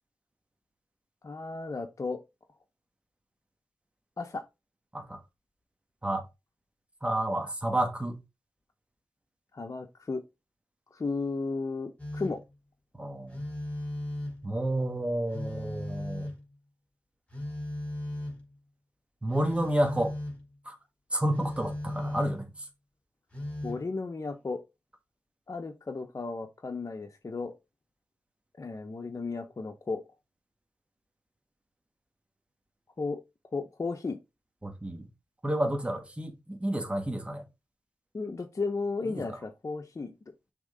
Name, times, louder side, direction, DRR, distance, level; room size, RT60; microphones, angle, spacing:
voice 1, 1.2-2.2 4.2-4.4 9.5-10.2 10.9-12.4 23.6-24.6 25.5-27.5 28.6-30.0 33.0-33.2 33.5-34.2 38.1-40.1, left 3 dB, 50° left, 0.9 m, -34 dB
voice 2, 7.0-8.2 13.0-13.4 14.4-16.3 19.2-20.1 20.6-20.7 21.1-22.5 34.6-35.1 35.4-37.4 39.1-39.2, right 1 dB, 15° right, 1.6 m, -30 dB
Telephone, 12.0-12.5 13.3-14.5 15.3-16.5 17.3-18.5 19.3-20.4 21.3-22.5 23.3-23.9, left 1 dB, 20° left, 3.5 m, -37 dB
6.2 x 3.6 x 4.9 m
wide cardioid pair, 65°, 7 cm